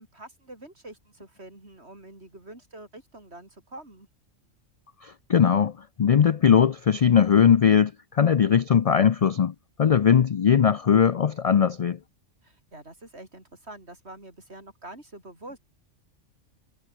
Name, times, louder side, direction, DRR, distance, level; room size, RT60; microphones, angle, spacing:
voice 1, 0.0-4.1 12.4-15.6, right 2 dB, 60° right, 6.0 m, -45 dB
voice 2, 5.0-5.7 6.0-12.0, left 7 dB, 70° left, 0.3 m, -20 dB
omnidirectional pair, 1.3 m